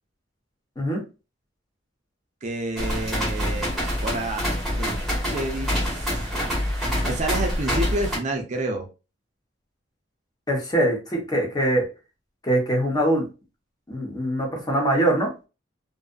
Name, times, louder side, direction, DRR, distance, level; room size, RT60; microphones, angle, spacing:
voice 1, 2.4-4.5 4.8-5.0 5.3-6.3 7.0-8.9, right 2 dB, 40° right, 3 dB, 0.4 m, -29 dB
sound 1, 2.8-8.2, equal, ahead, 1.1 m, -26 dB
voice 2, 10.5-11.8 12.4-13.3 13.9-15.3, right 1 dB, 20° left, 0 dB, 0.8 m, -23 dB
2.5 x 2.4 x 2.2 m, 0.31 s
head